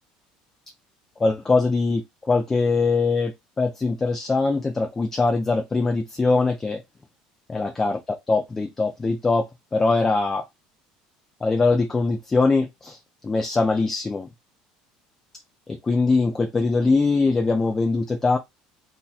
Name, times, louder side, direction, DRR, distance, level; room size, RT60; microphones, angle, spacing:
voice 1, 1.2-6.8 7.5-10.4 11.4-13.0 13.2-14.3 15.8-18.4, left 3 dB, 20° left, 0.5 m, -22 dB
2.8 x 2.2 x 3.9 m
supercardioid pair, 110°, 2 cm